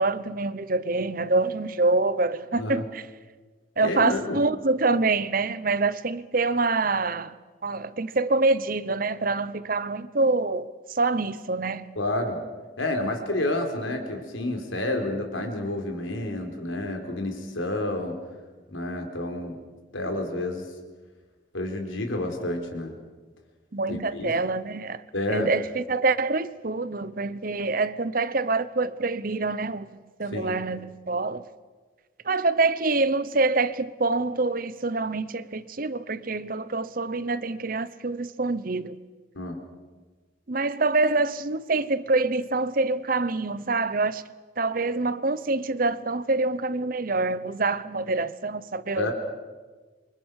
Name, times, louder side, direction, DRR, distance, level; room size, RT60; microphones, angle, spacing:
voice 1, 0.0-3.0 3.8-7.3 7.6-11.9 23.7-25.0 25.3-29.9 30.2-31.5 32.2-39.0 40.5-44.2 44.6-49.1, right 3 dB, 45° right, 0.9 m, -26 dB
voice 2, 3.8-4.4 12.0-12.4 12.8-18.2 18.7-19.6 19.9-20.6 21.5-22.9 23.9-24.3 25.1-25.5 30.3-30.5 39.3-39.6 49.0-49.1, left 1 dB, 85° left, 4.5 m, -29 dB
27.5 x 24.5 x 6.5 m
head